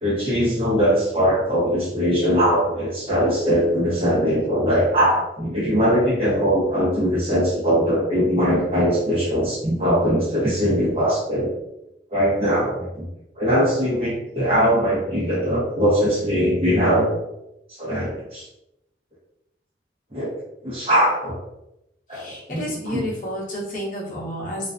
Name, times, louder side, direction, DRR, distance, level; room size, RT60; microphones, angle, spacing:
voice 1, 0.0-11.6 12.1-13.0 13.4-17.1 17.7-18.5 20.1-20.3 20.6-21.4 22.1-22.6 22.9-23.0, equal, 35° right, -6 dB, 0.8 m, -21 dB
voice 2, 22.1-24.7, equal, 50° left, -4 dB, 0.7 m, -30 dB
2.4 x 2.2 x 2.4 m, 0.88 s
head